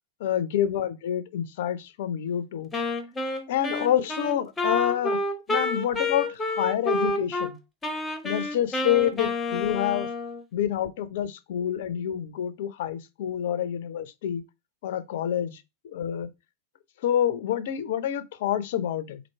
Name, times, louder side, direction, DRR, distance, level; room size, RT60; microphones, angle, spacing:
voice 1, 0.2-2.7 3.5-5.2 5.5-7.6 8.2-10.1 10.5-14.4 14.8-16.3 17.0-19.2, left 10 dB, 55° left, 0.5 m, -27 dB
Wind instrument woodwind instrument, 2.7-7.5 7.8-10.4, left 2 dB, 15° left, 0.8 m, -29 dB
4.4 x 2.6 x 4.2 m
figure-of-eight pair, 90°, 0 cm